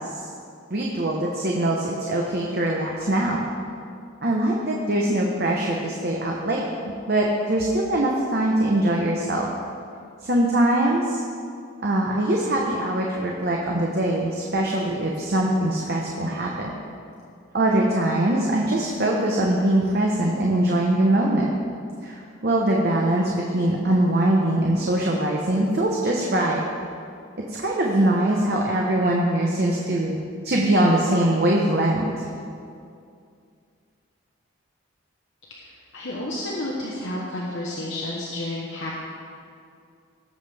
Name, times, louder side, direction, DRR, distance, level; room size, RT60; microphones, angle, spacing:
voice 1, 0.7-3.4 4.2-6.6 7.1-9.5 10.2-11.2 11.8-16.7 17.5-21.5 22.0-26.6 27.5-30.2 30.4-32.3, right 1 dB, 50° right, -1 dB, 0.9 m, -22 dB
voice 2, 35.5-38.9, left 1 dB, 65° left, -4 dB, 1.1 m, -31 dB
17.0 x 7.3 x 3.5 m, 2.4 s
head